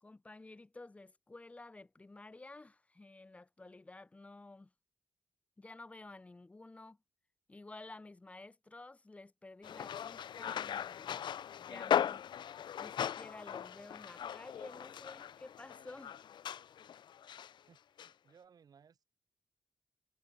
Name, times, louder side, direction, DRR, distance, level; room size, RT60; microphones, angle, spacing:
voice 1, 0.0-4.7 5.6-7.0 7.5-11.2 11.6-12.2 12.8-16.2, left 2 dB, 15° left, 1.3 m, -52 dB
sound 1, 9.6-17.5 18.0-18.1, left 9 dB, 75° left, 0.5 m, -38 dB
voice 2, 17.7-19.1, right 7 dB, 55° right, 5.5 m, -63 dB
wide cardioid pair, 180°, 8 cm